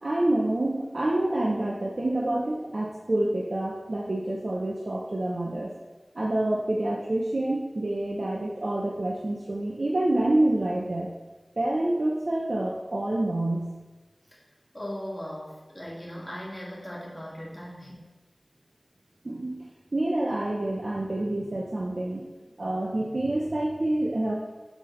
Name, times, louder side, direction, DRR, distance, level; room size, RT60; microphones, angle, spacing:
voice 1, 0.0-5.7 6.1-11.1 11.6-13.8 19.2-22.3 22.6-24.3, right 1 dB, 70° right, -3 dB, 0.7 m, -27 dB
voice 2, 14.7-18.0, equal, 20° left, -5 dB, 2.1 m, -38 dB
7.0 x 4.2 x 3.8 m, 1.2 s
wide cardioid pair, 45°, 0 cm